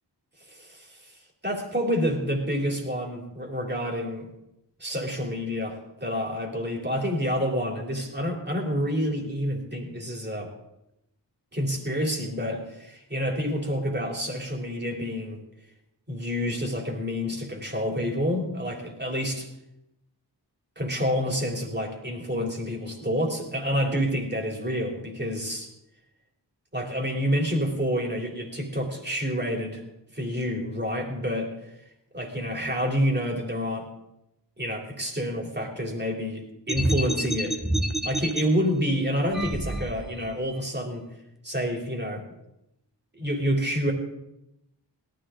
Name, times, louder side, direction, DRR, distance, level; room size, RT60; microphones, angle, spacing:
voice 1, 0.5-1.1 1.4-4.3 4.8-10.5 11.5-15.4 16.1-19.5 20.8-25.7 26.7-29.8 30.1-31.5 32.1-33.9 34.6-37.6 38.0-41.0 41.4-42.2 43.1-43.9, equal, 25° right, 1 dB, 3.3 m, -28 dB
sound 1, 36.7-38.4 39.3-40.3, right 1 dB, ahead, 1.3 m, -28 dB
17.5 x 13.0 x 3.8 m, 0.86 s
wide cardioid pair, 60°, 43 cm